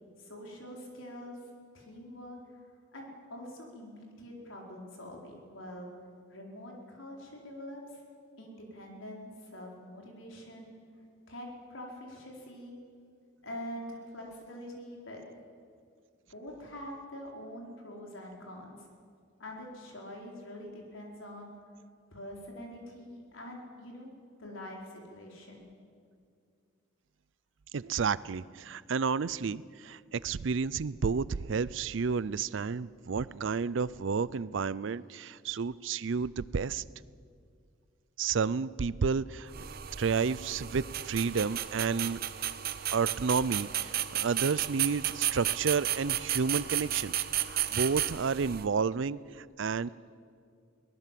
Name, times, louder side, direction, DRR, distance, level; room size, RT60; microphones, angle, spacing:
voice 1, 0.2-1.4 1.7-2.4 2.9-5.9 6.3-8.0 8.4-10.7 11.3-12.7 13.4-15.2 16.3-18.8 19.4-21.5 22.1-24.1 24.4-25.7, left 1 dB, 80° left, -1 dB, 4.7 m, -45 dB
voice 2, 27.7-36.8 38.2-39.5 40.0-42.2 42.9-49.9, right 5 dB, 65° right, 20 dB, 0.5 m, -31 dB
sound 1, 39.5-48.7, right 12 dB, 50° right, 0.9 m, -33 dB
23.0 x 18.5 x 7.6 m, 2.3 s
head